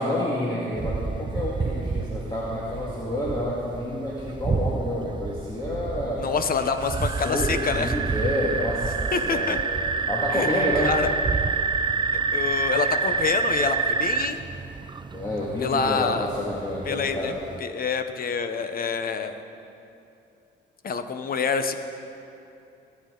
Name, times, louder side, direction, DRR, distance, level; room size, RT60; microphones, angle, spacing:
voice 1, 0.0-6.3 6.9-7.0 7.2-9.6 10.1-11.0 15.1-17.4, left 1 dB, 20° left, -6 dB, 2.0 m, -29 dB
sound 1, 0.8-17.6, right 4 dB, 25° right, 0.5 m, -28 dB
voice 2, 6.2-7.9 9.1-9.6 10.3-10.5 10.8-11.1 12.3-14.4 15.6-16.3 16.9-17.3 17.6-19.4 20.8-21.7, left 5 dB, 45° left, 9 dB, 1.0 m, -26 dB
22.0 x 8.7 x 3.9 m, 2.7 s
cardioid pair, 90°, 20 cm